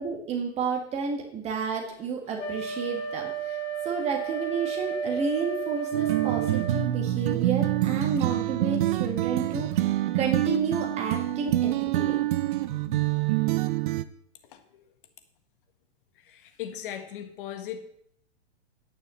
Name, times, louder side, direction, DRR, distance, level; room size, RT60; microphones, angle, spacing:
voice 1, 0.0-3.6 3.9-9.9 10.1-12.2, right 5 dB, 20° right, 2 dB, 1.6 m, -31 dB
Wind instrument woodwind instrument, 2.4-6.8, right 6 dB, 75° left, 3.8 m, -33 dB
sound 1, 5.9-14.0, right 14 dB, 50° right, 0.6 m, -26 dB
voice 2, 14.4-14.9 16.2-17.8, left 10 dB, 50° left, 8 dB, 1.6 m, -38 dB
9.8 x 6.6 x 6.7 m, 0.67 s
hypercardioid pair, 145°, 34 cm